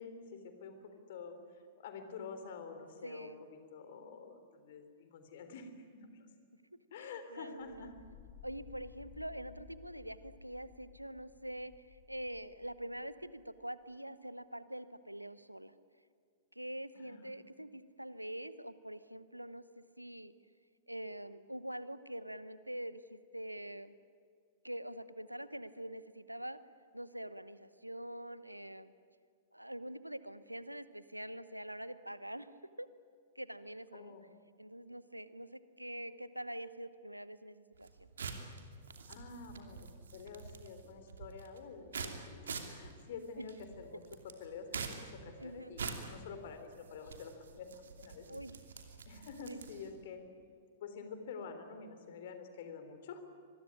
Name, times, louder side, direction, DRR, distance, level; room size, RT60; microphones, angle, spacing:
voice 1, 0.0-6.3 6.9-7.9 17.0-17.3 33.9-34.2 39.1-44.0 44.4-48.3 49.1-50.2 50.8-53.2, left 5 dB, 50° left, 8 dB, 3.6 m, -48 dB
voice 2, 3.0-3.4 7.0-7.9 8.4-15.7 16.5-20.3 20.9-24.0 24.6-26.6 26.9-28.9 29.5-32.5 32.8-32.9 33.3-34.2 34.6-38.1 43.4-43.5 45.4-45.7 48.3-48.6 49.5-49.6, right 1 dB, 90° right, 15 dB, 1.0 m, -45 dB
sound 1, 7.6-13.6, left 6 dB, 35° left, 2.4 m, -57 dB
sound 2, 37.7-50.0, right 5 dB, 65° right, 2.8 m, -46 dB
25.0 x 22.0 x 10.0 m, 2.1 s
figure-of-eight pair, 105°, 0 cm